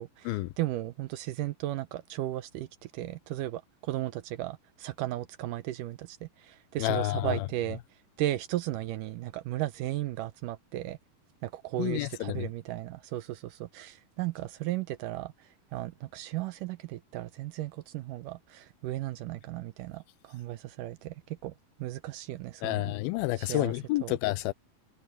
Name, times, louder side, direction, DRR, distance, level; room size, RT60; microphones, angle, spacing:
voice 1, 0.0-7.8 8.2-11.0 11.4-15.3 15.7-21.1 21.4-21.5 21.8-22.9 23.4-23.7 24.0-24.1, right 15 dB, 80° right, 2.1 m, -35 dB
voice 2, 6.8-7.5 11.8-12.5 22.6-24.5, left 18 dB, 85° left, 2.5 m, -29 dB
omnidirectional pair, 4.2 m